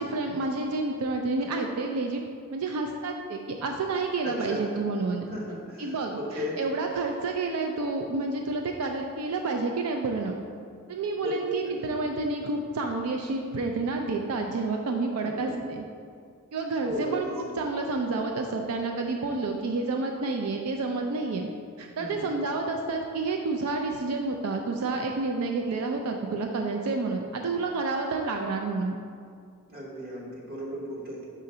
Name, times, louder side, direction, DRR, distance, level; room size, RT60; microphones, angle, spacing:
voice 1, 0.0-2.2 2.5-5.3 5.8-10.4 10.9-15.8 16.5-21.5 21.8-29.0, right 3 dB, 90° right, 3 dB, 0.4 m, -29 dB
voice 2, 4.2-4.7 5.3-6.6 11.2-11.3 11.6-11.9 15.2-15.5 16.8-17.4 22.0-22.3 29.7-31.3, equal, 45° right, -3 dB, 1.3 m, -36 dB
4.9 x 3.8 x 5.5 m, 2.2 s
head